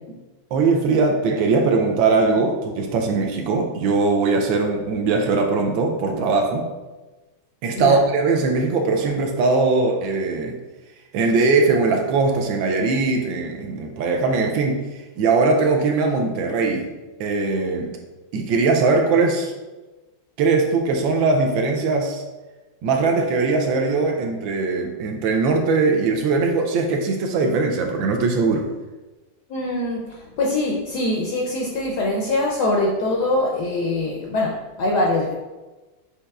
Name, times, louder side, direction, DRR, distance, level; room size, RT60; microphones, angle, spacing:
voice 1, 0.5-6.6 7.6-10.6 11.1-14.8 15.2-16.9 17.2-18.0 18.3-19.5 20.4-22.2 22.8-28.7, right 3 dB, 75° right, 3 dB, 1.3 m, -20 dB
voice 2, 29.5-35.3, left 2 dB, 75° left, -1 dB, 1.0 m, -23 dB
6.5 x 2.8 x 2.3 m, 1.2 s
omnidirectional pair, 2.2 m